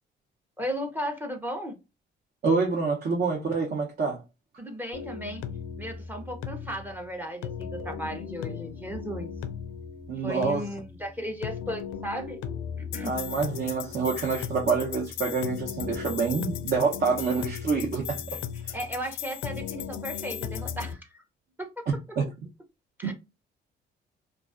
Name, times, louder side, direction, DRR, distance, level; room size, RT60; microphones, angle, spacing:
voice 1, 0.6-1.8 4.6-5.4 5.8-9.3 10.2-12.4 12.8-13.2 18.5-21.2 21.6-21.8 23.0-23.1, equal, 10° right, 0.6 m, -35 dB
voice 2, 2.4-4.2 10.1-10.6 13.0-18.2 18.6-18.8 22.2-22.3 23.0-23.1, right 4 dB, 55° right, 0.7 m, -27 dB
sound 1, 4.9-20.9, left 7 dB, 90° left, 0.4 m, -37 dB
2.3 x 2.3 x 2.4 m
cardioid pair, 90°, 20 cm